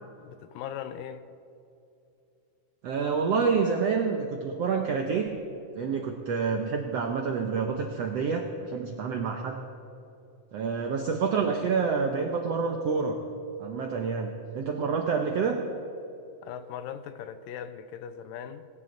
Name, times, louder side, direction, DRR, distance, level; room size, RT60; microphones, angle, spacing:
voice 1, 0.2-1.3 16.4-18.7, left 9 dB, 80° left, 2.3 m, -39 dB
voice 2, 2.8-5.4 5.7-9.7 10.5-13.2 13.6-15.6, right 5 dB, 80° right, 1.4 m, -28 dB
20.0 x 18.5 x 3.9 m
omnidirectional pair, 4.1 m